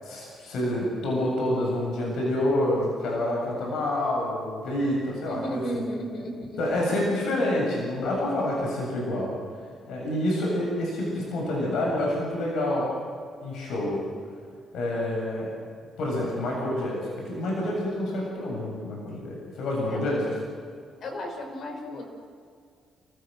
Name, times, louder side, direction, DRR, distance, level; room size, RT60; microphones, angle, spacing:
voice 1, 0.0-5.8 6.6-9.3 9.9-12.9 13.4-14.0 14.7-15.5 16.0-17.0 17.2-20.2, left 1 dB, 80° left, -2 dB, 7.5 m, -27 dB
voice 2, 5.3-6.6 13.8-13.9 19.9-20.3 21.0-22.0, equal, 60° left, 2 dB, 5.9 m, -34 dB
29.5 x 16.0 x 7.7 m, 2.3 s
cardioid pair, 90°, 0 cm